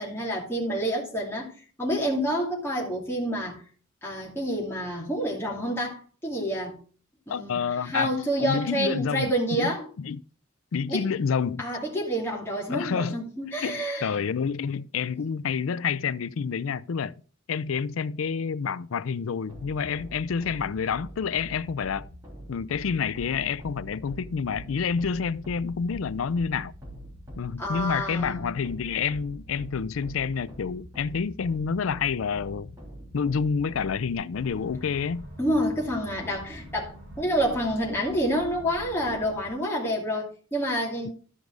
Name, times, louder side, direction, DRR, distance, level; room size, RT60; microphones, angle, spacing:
voice 1, 0.0-1.5 1.8-3.6 4.0-6.8 7.3-9.9 10.9-11.0 11.6-14.1 27.6-28.6 35.4-41.1, equal, 10° left, 2.6 m, -28 dB
voice 2, 7.3-8.1 8.4-9.7 10.0-10.2 10.7-11.6 12.7-13.2 13.6-17.2 17.5-22.1 22.5-26.7 27.4-32.8 33.1-35.2 41.0-41.1, left 6 dB, 90° left, 0.4 m, -28 dB
sound 1, 19.5-34.1, equal, 15° right, 3.3 m, -44 dB
sound 2, 34.3-39.5, right 1 dB, 55° right, 5.6 m, -44 dB
12.5 x 5.2 x 4.7 m
head